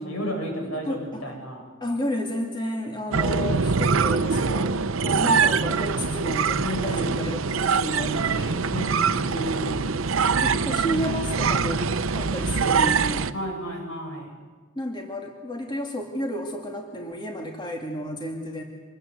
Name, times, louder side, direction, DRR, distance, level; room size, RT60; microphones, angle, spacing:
voice 1, 0.0-1.6 6.6-7.4 8.7-10.0 13.3-14.3, equal, 85° left, 1 dB, 7.8 m, -32 dB
voice 2, 0.9-1.3 1.8-8.7 10.4-11.9 12.2-13.3 14.8-18.6, equal, 20° left, 1 dB, 2.5 m, -32 dB
sound 1, 3.1-13.3, right 5 dB, 75° right, 0.7 m, -24 dB
26.5 x 21.0 x 8.0 m, 1.4 s
head